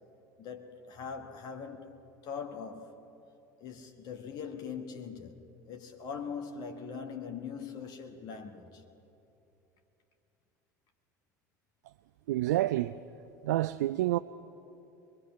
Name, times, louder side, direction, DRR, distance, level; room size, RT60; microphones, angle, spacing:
voice 1, 0.4-3.1 3.6-8.8, left 6 dB, 40° left, 1.6 m, -42 dB
voice 2, 12.3-12.9 13.4-14.2, right 15 dB, 60° right, 0.4 m, -28 dB
24.5 x 22.0 x 5.7 m
figure-of-eight pair, 70°, 10 cm